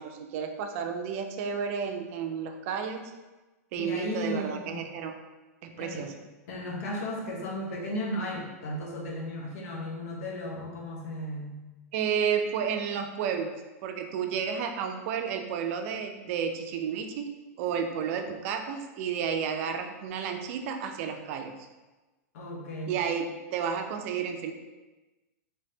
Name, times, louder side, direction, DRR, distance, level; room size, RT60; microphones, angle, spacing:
voice 1, 0.0-3.1 3.7-5.1 5.6-6.1 11.9-13.5 13.8-21.5 22.9-24.5, right 7 dB, 55° right, 5 dB, 0.4 m, -31 dB
voice 2, 3.8-4.9 5.7-6.1 6.5-11.6 22.3-23.0, left 1 dB, 70° left, -2 dB, 1.0 m, -35 dB
3.3 x 3.1 x 2.8 m, 1.2 s
hypercardioid pair, 120°, 9 cm